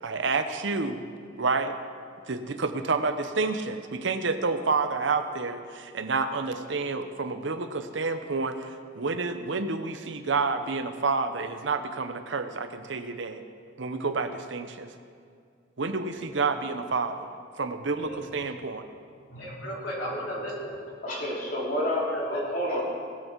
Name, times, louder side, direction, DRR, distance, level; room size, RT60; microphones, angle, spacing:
voice 1, 0.0-1.0 1.4-1.8 2.3-13.4 13.8-14.9 15.8-17.3 17.6-18.8, right 4 dB, 65° right, 8 dB, 0.8 m, -29 dB
voice 2, 19.3-20.8 22.1-22.6, equal, 70° left, -5 dB, 3.5 m, -35 dB
voice 3, 21.0-22.8, left 1 dB, 45° left, -4 dB, 3.0 m, -29 dB
19.5 x 8.1 x 4.6 m, 2.2 s
head